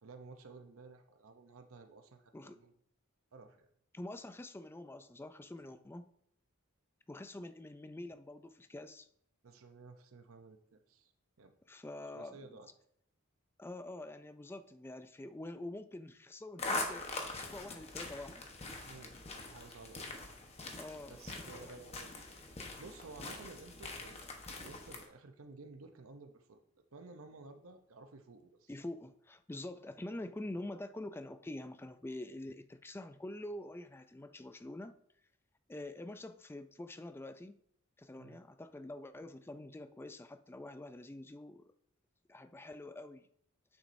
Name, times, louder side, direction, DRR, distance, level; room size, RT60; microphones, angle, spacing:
voice 1, 0.0-2.7 3.3-3.7 9.4-11.1 11.4-11.5 12.1-12.7 18.8-20.4 21.1-22.1 22.8-24.2 24.6-28.7 38.2-38.4, right 3 dB, 70° right, 6 dB, 0.7 m, -54 dB
voice 2, 3.9-6.1 7.1-9.1 11.7-12.4 13.6-18.5 20.8-21.2 21.6-21.7 28.7-35.0 35.7-37.6 38.0-41.7 42.3-43.3, left 1 dB, 10° left, 10 dB, 0.3 m, -46 dB
sound 1, 16.6-25.1, left 2 dB, 30° left, 1.0 m, -43 dB
9.1 x 7.1 x 2.6 m, 0.70 s
head